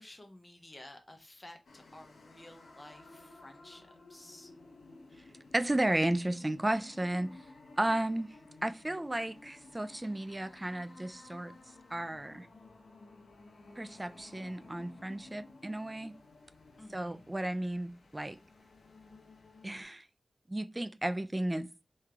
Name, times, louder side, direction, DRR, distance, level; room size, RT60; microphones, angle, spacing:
voice 1, 0.0-3.8 4.1-4.5 16.8-17.2 18.2-18.4, left 1 dB, 20° left, 0.6 m, -53 dB
sound 1, 1.7-19.8, left 3 dB, 85° left, 0.8 m, -55 dB
voice 2, 5.5-7.3 7.8-8.3 8.6-11.5 11.9-12.5 13.8-16.1 16.9-18.4 19.6-20.1 20.5-21.8, right 1 dB, 20° right, 0.3 m, -33 dB
3.5 x 3.2 x 3.3 m
wide cardioid pair, 115°, 0 cm